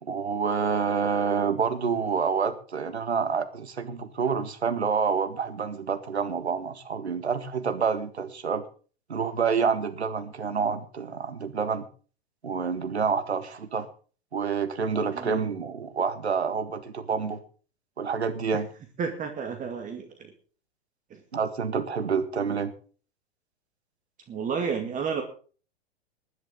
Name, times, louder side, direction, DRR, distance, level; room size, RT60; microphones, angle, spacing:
voice 1, 0.0-8.6 9.1-11.9 12.4-13.9 14.3-17.4 18.0-18.7 21.3-22.7, right 6 dB, 85° right, 10 dB, 1.8 m, -28 dB
voice 2, 15.1-15.5 18.5-18.6 19.0-20.3 21.1-21.2 24.3-25.2, right 6 dB, 25° right, 4 dB, 2.2 m, -31 dB
20.0 x 10.5 x 3.9 m, 0.40 s
hypercardioid pair, 110°, 32 cm